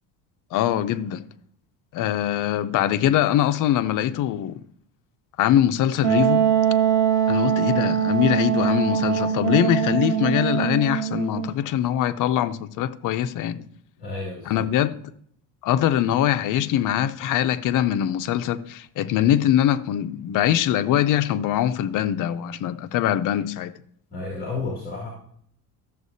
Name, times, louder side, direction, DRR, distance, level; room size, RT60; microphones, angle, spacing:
voice 1, 0.5-1.2 1.9-4.6 5.4-6.5 7.3-13.7 14.5-15.0 15.6-23.7, left 11 dB, 50° left, 0.6 m, -22 dB
Wind instrument woodwind instrument, 6.0-11.6, right 8 dB, 50° right, 1.1 m, -22 dB
voice 2, 14.0-14.7 24.1-25.1, left 3 dB, 25° left, 2.0 m, -31 dB
12.5 x 7.2 x 2.7 m
cardioid pair, 140°, 41 cm